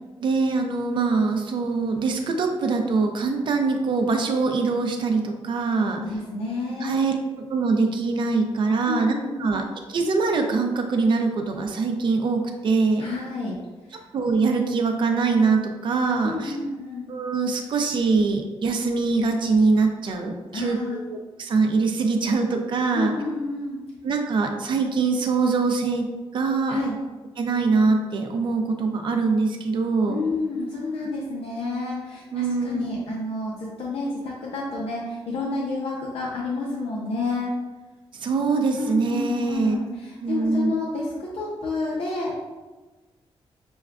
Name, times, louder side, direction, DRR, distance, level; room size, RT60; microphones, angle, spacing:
voice 1, 0.2-6.0 6.8-9.1 9.4-9.6 9.9-13.1 14.1-16.6 17.1-23.1 24.0-26.1 26.3-26.8 27.4-30.2 32.3-32.9 38.1-39.8 40.2-40.8, right 4 dB, 55° right, 4 dB, 0.5 m, -23 dB
voice 2, 6.0-7.0 8.9-9.6 13.0-13.6 16.2-17.1 20.5-21.0 22.9-23.8 26.7-27.0 30.1-37.5 38.8-42.5, left 3 dB, 75° left, -4 dB, 0.7 m, -30 dB
6.0 x 2.2 x 2.4 m, 1.2 s
wide cardioid pair, 155°, 10 cm